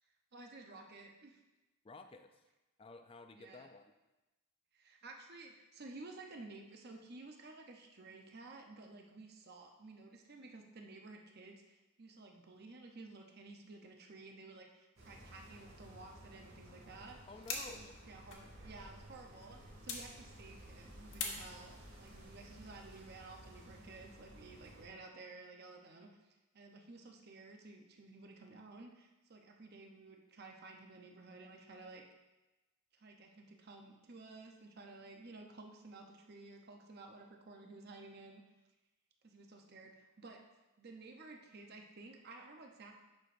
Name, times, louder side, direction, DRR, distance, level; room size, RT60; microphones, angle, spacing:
voice 1, 0.3-1.4 3.3-3.7 4.7-17.2 17.7-32.0 32.9-38.4 39.2-40.4 40.8-43.0, right 3 dB, 50° right, 2 dB, 0.7 m, -54 dB
voice 2, 1.8-2.3 2.8-3.9 17.3-18.0, left 3 dB, 25° left, 7 dB, 0.4 m, -53 dB
sound 1, 15.0-24.9, right 1 dB, 85° right, 2.3 m, -56 dB
sound 2, 16.9-22.2, left 4 dB, 55° left, 1.1 m, -47 dB
9.5 x 5.9 x 2.6 m, 1.1 s
head